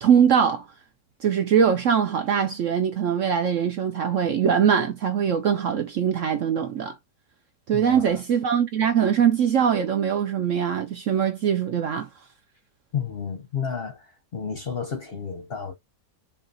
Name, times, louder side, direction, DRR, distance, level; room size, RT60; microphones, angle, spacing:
voice 1, 0.0-0.7 1.2-7.0 7.7-12.1, right 8 dB, 65° right, 0.8 m, -22 dB
voice 2, 7.7-8.2 12.9-15.7, left 7 dB, 50° left, 0.8 m, -32 dB
5.6 x 2.5 x 2.5 m
omnidirectional pair, 1.8 m